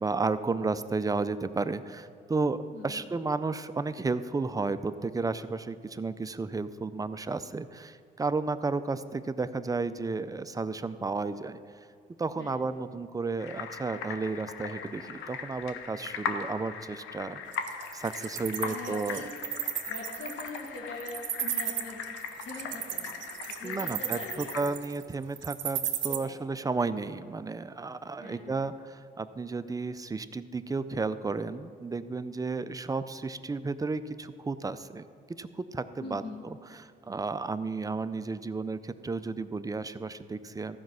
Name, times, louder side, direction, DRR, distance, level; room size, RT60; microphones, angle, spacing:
voice 1, 0.0-11.6 12.2-17.4 17.9-19.2 23.6-35.0 35.4-40.8, right 3 dB, 20° right, 12 dB, 0.4 m, -33 dB
voice 2, 2.7-3.0 12.4-12.6 18.6-19.3 19.9-22.0 22.4-24.7 26.1-26.4 28.2-28.6 36.0-36.4, left 3 dB, 65° left, -1 dB, 1.6 m, -43 dB
sound 1, 13.4-24.6, left 6 dB, 85° left, 0.9 m, -39 dB
Wild animals, 17.5-26.2, right 10 dB, 70° right, 0.9 m, -34 dB
14.5 x 5.2 x 6.2 m, 2.3 s
cardioid pair, 90°, 20 cm